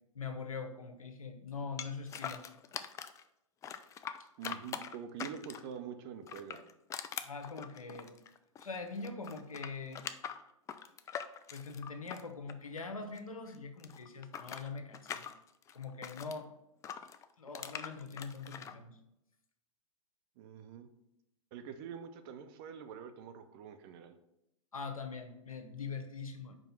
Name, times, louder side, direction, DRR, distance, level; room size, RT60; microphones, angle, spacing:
voice 1, 0.1-2.4 7.2-8.1 8.6-10.0 11.5-15.2 15.7-16.5 17.4-19.0 24.7-26.6, left 4 dB, 80° left, 6 dB, 1.1 m, -43 dB
sound 1, 1.8-3.2 3.6-5.8 6.2-8.8 9.0-13.2 13.5-16.4 16.8-18.7, left 8 dB, 15° left, 0.4 m, -43 dB
voice 2, 4.4-6.6 20.4-20.9 21.5-24.2, right 7 dB, 45° right, 8 dB, 0.8 m, -45 dB
5.3 x 4.6 x 5.9 m, 0.85 s
figure-of-eight pair, 105°, 18 cm